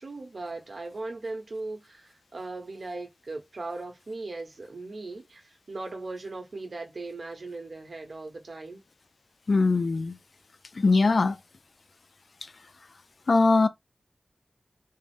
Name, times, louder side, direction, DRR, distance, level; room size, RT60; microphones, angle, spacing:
voice 1, 0.0-8.8, right 3 dB, 80° right, 1.0 m, -38 dB
voice 2, 9.5-10.2 10.8-11.4 13.3-13.7, left 3 dB, 75° left, 0.4 m, -21 dB
3.6 x 2.0 x 3.4 m
wide cardioid pair, 75°, 0 cm